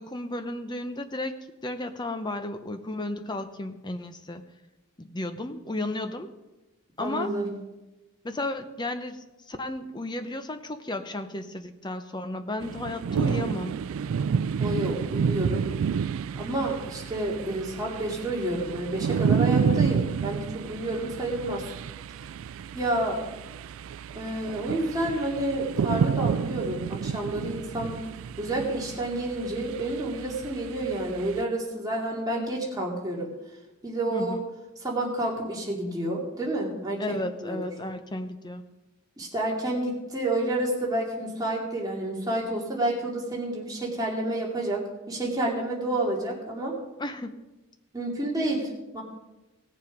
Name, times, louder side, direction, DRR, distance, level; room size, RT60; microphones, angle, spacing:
voice 1, 0.0-1.3 1.6-4.4 5.0-6.3 7.0-7.4 8.2-13.8 34.1-34.4 37.0-38.6 47.0-47.4, left 1 dB, 20° left, 8 dB, 0.8 m, -33 dB
voice 2, 7.0-7.5 14.6-15.7 16.4-21.7 22.7-23.2 24.1-28.0 28.4-33.3 33.8-34.4 34.8-37.2 37.4-37.6 39.2-46.8 47.9-49.0, right 1 dB, 15° right, -3 dB, 2.5 m, -29 dB
sound 1, 12.6-31.4, right 6 dB, 65° right, 0.3 m, -30 dB
17.5 x 7.2 x 5.2 m, 1.0 s
head